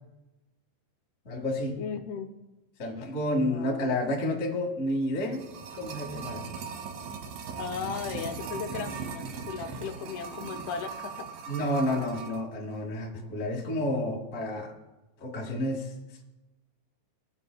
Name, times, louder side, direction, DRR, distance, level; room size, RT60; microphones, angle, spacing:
voice 1, 1.2-1.8 2.8-5.4 5.7-6.5 11.5-14.7 15.2-15.9, left 1 dB, 40° left, -1 dB, 1.0 m, -30 dB
voice 2, 1.8-2.3 3.4-4.0 7.5-11.3 11.6-11.7, left 6 dB, 80° left, 6 dB, 2.6 m, -37 dB
sound 1, 5.0-12.4 12.7-12.8, right 5 dB, 80° right, 1.6 m, -39 dB
21.5 x 8.7 x 2.3 m, 1.0 s
omnidirectional pair, 4.6 m